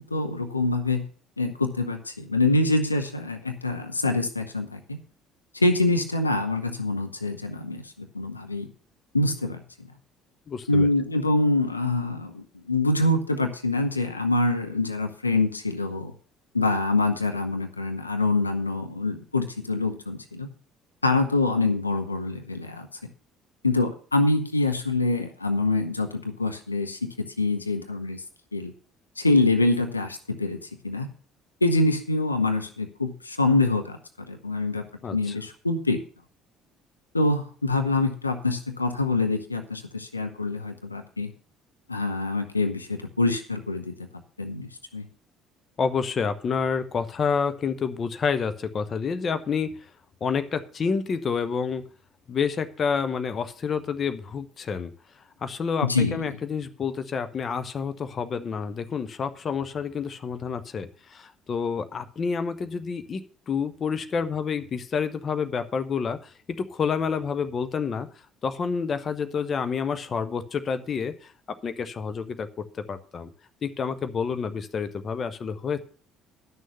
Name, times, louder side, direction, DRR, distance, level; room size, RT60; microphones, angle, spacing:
voice 1, 0.1-1.1 1.4-5.0 5.5-8.7 9.1-9.6 10.7-16.1 16.5-20.5 21.0-22.9 23.6-28.2 28.5-28.7 29.2-30.6 30.8-31.1 31.6-34.0 34.3-34.8 35.1-36.0 37.1-41.3 41.9-43.9 44.4-44.7 44.9-45.1 55.8-56.2, left 2 dB, 85° left, 6 dB, 0.6 m, -25 dB
voice 2, 10.5-10.9 35.0-35.3 45.8-49.7 50.2-51.8 52.3-54.9 55.4-68.1 68.4-71.3 71.6-73.3 73.6-75.8, left 6 dB, 35° left, 10 dB, 0.9 m, -29 dB
11.0 x 6.4 x 6.6 m, 0.42 s
figure-of-eight pair, 55°, 0 cm